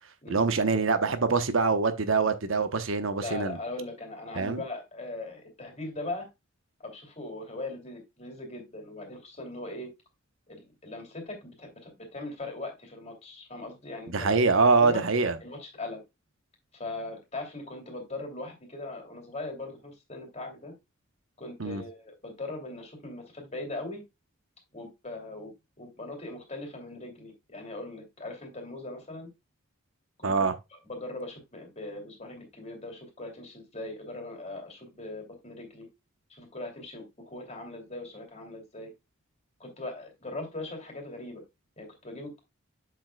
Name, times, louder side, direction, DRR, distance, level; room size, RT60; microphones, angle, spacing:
voice 1, 0.3-3.6 4.4-4.6 14.1-15.3 21.6-21.8 30.2-30.5, right 4 dB, 70° right, 0.9 m, -24 dB
voice 2, 3.2-6.3 6.8-9.9 10.5-14.5 14.8-15.0 15.4-16.0 16.8-20.7 21.4-24.0 24.7-25.5 25.8-29.3 30.2-35.9 36.3-38.9 39.6-41.4 41.8-42.4, left 2 dB, 30° left, 2.8 m, -40 dB
7.6 x 7.2 x 2.2 m
head